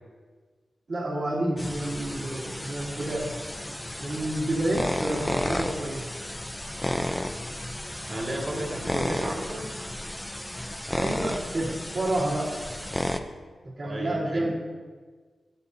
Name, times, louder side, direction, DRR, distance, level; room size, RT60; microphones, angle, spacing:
voice 1, 0.9-3.3 4.0-6.1 10.9-12.5 13.8-14.5, right 1 dB, 55° right, -7 dB, 2.7 m, -29 dB
sound 1, 1.6-13.2, left 1 dB, 5° left, 0.5 m, -32 dB
voice 2, 8.1-9.7 13.8-14.5, right 1 dB, 30° right, -1 dB, 2.0 m, -33 dB
16.0 x 8.6 x 2.8 m, 1.4 s
wide cardioid pair, 150°, 0 cm